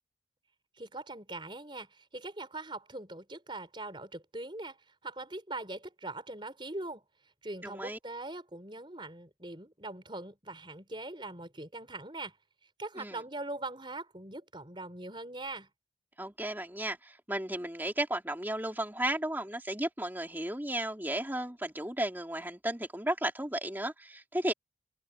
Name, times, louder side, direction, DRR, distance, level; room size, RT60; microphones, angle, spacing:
voice 1, 0.8-4.8 5.0-7.0 7.4-12.4 12.8-15.7, right 2 dB, 25° right, 4.6 m, -41 dB
voice 2, 7.6-8.0 13.0-13.2 16.2-24.5, right 1 dB, 10° right, 2.9 m, -34 dB
open air
head